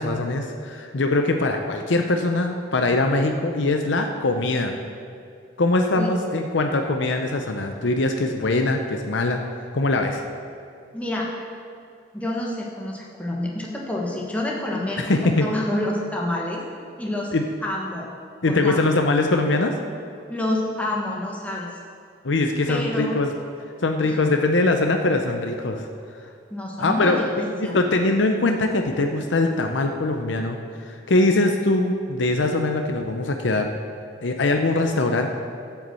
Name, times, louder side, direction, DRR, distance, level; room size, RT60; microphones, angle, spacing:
voice 1, 0.0-4.8 5.6-9.4 9.7-10.2 15.0-15.5 17.3-17.4 18.4-19.7 22.2-23.3 23.8-25.9 26.8-33.7 34.2-35.3, left 2 dB, 80° left, 4 dB, 0.7 m, -22 dB
voice 2, 10.9-11.3 12.1-15.0 15.4-16.6 17.0-17.3 17.6-18.1 18.4-18.8 20.3-21.7 22.7-23.2 24.3-24.4 26.5-27.8, left 1 dB, 5° left, -3 dB, 1.4 m, -28 dB
11.0 x 5.8 x 7.7 m, 2.3 s
head